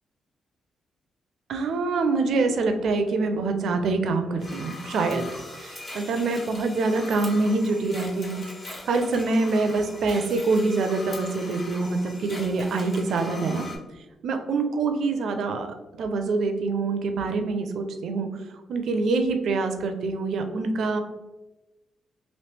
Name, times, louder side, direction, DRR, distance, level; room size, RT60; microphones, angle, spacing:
voice 1, 1.5-5.2 5.6-8.4 8.9-13.6 14.2-15.7 16.0-18.3 18.7-21.0, right 3 dB, 75° right, 6 dB, 0.4 m, -25 dB
sound 1, 4.4-13.8, left 2 dB, 45° left, 1.0 m, -41 dB
3.0 x 2.7 x 3.2 m, 1.1 s
cardioid pair, 110°, 0 cm